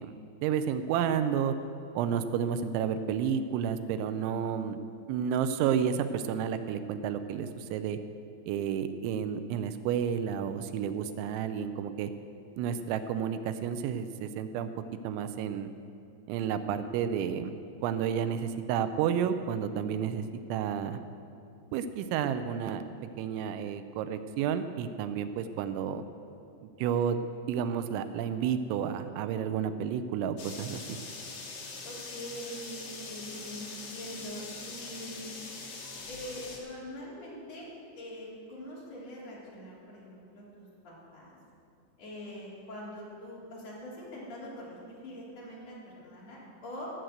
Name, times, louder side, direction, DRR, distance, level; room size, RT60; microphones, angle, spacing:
voice 1, 0.0-1.6 2.0-4.8 5.1-8.0 8.5-12.1 12.6-14.7 15.0-15.7 16.3-17.5 17.8-21.0 21.7-22.8 23.2-26.0 26.6-31.0, right 8 dB, 85° right, 10 dB, 2.8 m, -31 dB
sound 1, 30.4-36.6, left 3 dB, 65° left, 1.7 m, -42 dB
voice 2, 31.8-35.4 36.0-41.4 42.0-46.9, equal, 35° left, -6 dB, 3.9 m, -43 dB
17.5 x 6.3 x 7.9 m, 2.5 s
omnidirectional pair, 5.7 m